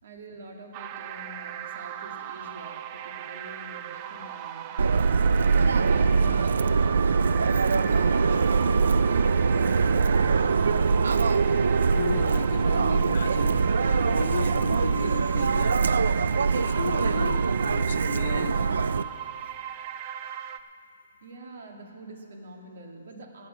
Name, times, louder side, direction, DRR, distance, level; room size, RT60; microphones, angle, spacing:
voice 1, 0.0-10.9 21.2-23.5, right 1 dB, 55° right, 2 dB, 1.9 m, -46 dB
sound 1, 0.7-20.6, right 10 dB, 25° right, 0.4 m, -38 dB
Subway metro underground, 4.8-19.0, right 5 dB, 85° right, 0.4 m, -23 dB
voice 2, 11.9-15.8 16.4-18.8, left 7 dB, 60° left, 16 dB, 0.3 m, -35 dB
16.5 x 6.2 x 8.2 m, 2.5 s
hypercardioid pair, 170°, 0 cm